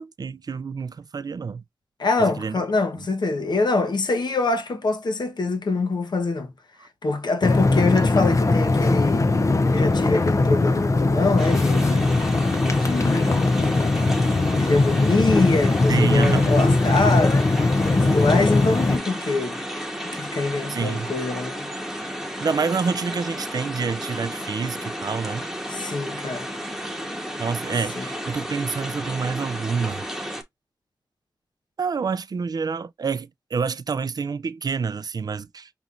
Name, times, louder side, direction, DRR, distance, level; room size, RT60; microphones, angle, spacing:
voice 1, 0.0-1.6 2.2-2.6 2.9-3.0 15.9-16.5 20.7-21.1 22.4-25.4 27.4-30.1 31.8-35.7, right 5 dB, 60° right, 0.3 m, -27 dB
voice 2, 2.0-6.5 7.0-9.3 9.7-12.0 12.7-13.9 14.6-17.4 17.9-19.6 20.1-21.7 25.7-26.5 27.9-28.1, left 3 dB, 80° left, 0.9 m, -24 dB
sound 1, 7.4-19.0, left 3 dB, 45° left, 0.5 m, -20 dB
sound 2, 11.4-30.4, equal, 5° right, 1.0 m, -33 dB
5.3 x 3.0 x 2.4 m
wide cardioid pair, 75°, 7 cm